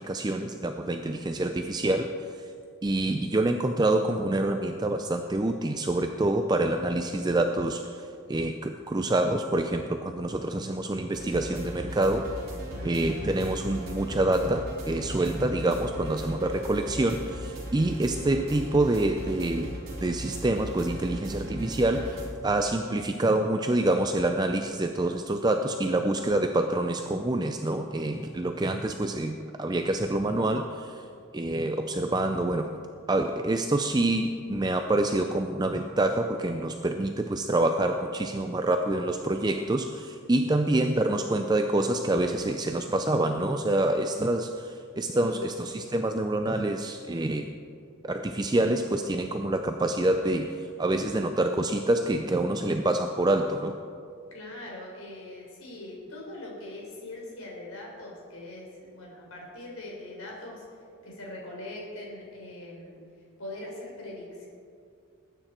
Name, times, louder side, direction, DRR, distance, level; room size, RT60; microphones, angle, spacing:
voice 1, 0.0-2.5 2.8-12.3 12.8-19.7 20.0-31.0 31.3-32.7 33.1-47.5 48.0-53.8, right 2 dB, 20° right, 6 dB, 0.4 m, -27 dB
sound 1, 11.1-22.3, equal, 45° right, 3.2 m, -38 dB
voice 2, 45.1-45.5 54.3-60.7 61.0-63.0 63.4-64.5, left 1 dB, 80° left, -2 dB, 3.8 m, -41 dB
20.0 x 9.0 x 4.4 m, 2.3 s
head